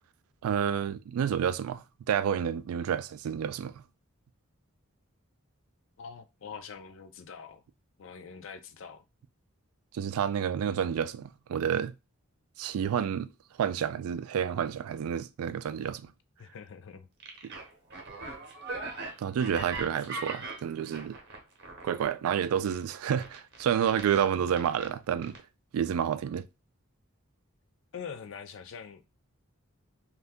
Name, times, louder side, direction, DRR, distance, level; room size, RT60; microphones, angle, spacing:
voice 1, 0.4-3.7 9.9-11.9 12.6-13.3 13.6-16.1 17.4-17.5 19.2-21.2 21.8-25.4 25.7-26.5, right 8 dB, 90° right, 0.3 m, -29 dB
voice 2, 6.0-7.6 8.0-9.0 16.4-17.1 27.9-29.0, left 6 dB, 60° left, 0.4 m, -44 dB
sound 1, 17.2-22.1 22.4-24.9 25.2-25.4, right 3 dB, 50° right, 0.7 m, -40 dB
2.6 x 2.2 x 3.4 m
head